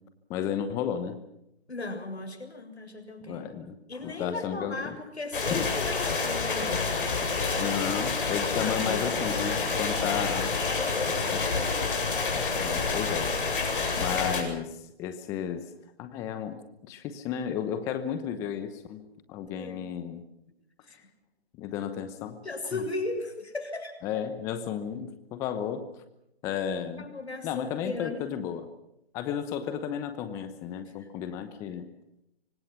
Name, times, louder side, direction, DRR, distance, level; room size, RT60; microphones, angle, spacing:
voice 1, 0.3-1.2 3.3-3.8 4.0-5.0 5.5-5.7 7.5-10.5 12.5-13.3 14.0-15.7 16.0-16.6 16.9-20.2 21.6-22.4 22.7-22.8 24.0-25.9 26.4-27.1 27.4-28.7 29.1-31.9, left 8 dB, 10° left, 10 dB, 0.9 m, -33 dB
voice 2, 1.7-3.5 3.9-6.9 8.4-9.1 10.8-11.2 11.5-11.8 19.6-19.9 20.9-21.0 22.4-24.2 27.0-28.3 31.0-31.1, left 2 dB, 80° left, 5 dB, 7.2 m, -36 dB
sound 1, 5.3-14.4, left 4 dB, 55° left, 8.0 m, -28 dB
26.0 x 25.0 x 5.9 m, 0.81 s
figure-of-eight pair, 150°, 32 cm